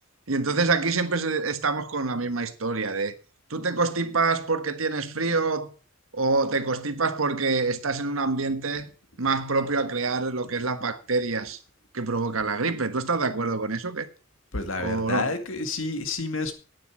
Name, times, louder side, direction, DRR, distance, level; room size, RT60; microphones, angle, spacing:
voice 1, 0.3-3.1 3.5-5.7 6.1-8.9 9.2-11.6 11.9-14.1 14.8-15.3, right 3 dB, 90° right, 1.4 m, -26 dB
voice 2, 14.5-16.5, left 3 dB, 75° left, 2.1 m, -29 dB
10.5 x 9.6 x 6.2 m
head